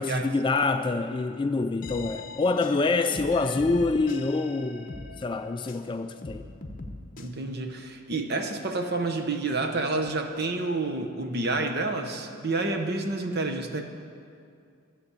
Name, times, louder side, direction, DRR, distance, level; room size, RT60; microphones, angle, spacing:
voice 1, 0.0-4.9 5.2-6.5, left 3 dB, 20° left, 8 dB, 0.3 m, -26 dB
sound 1, 1.8-5.9 6.2-7.3, left 3 dB, 40° left, 0.9 m, -41 dB
voice 2, 7.2-13.8, right 3 dB, 45° right, 5 dB, 1.0 m, -29 dB
13.0 x 7.7 x 8.3 m, 2.4 s
head